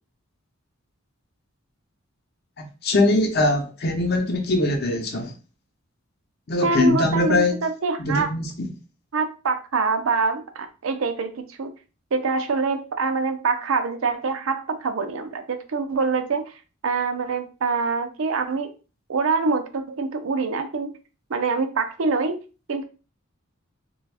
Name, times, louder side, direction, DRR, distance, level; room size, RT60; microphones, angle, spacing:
voice 1, 2.6-5.3 6.5-7.5 8.0-8.7, left 2 dB, 50° left, 0.7 m, -22 dB
voice 2, 6.6-8.3 9.1-11.7 12.1-16.5 16.8-18.7 19.1-20.9 21.3-22.4 22.7-22.8, right 4 dB, 75° right, 0.5 m, -25 dB
3.3 x 2.3 x 3.3 m
head